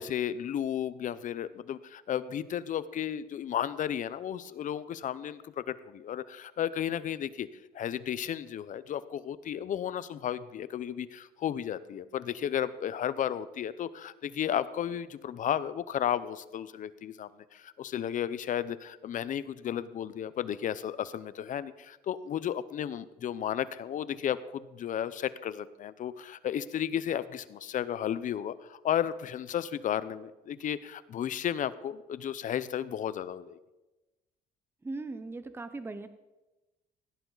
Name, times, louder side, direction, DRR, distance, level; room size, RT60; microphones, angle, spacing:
voice 1, 0.0-7.5 7.7-33.6, left 10 dB, 50° left, 16 dB, 0.7 m, -33 dB
voice 2, 34.8-36.1, right 3 dB, 15° right, 10 dB, 0.7 m, -38 dB
16.5 x 10.5 x 4.0 m, 1.0 s
cardioid pair, 110°, 17 cm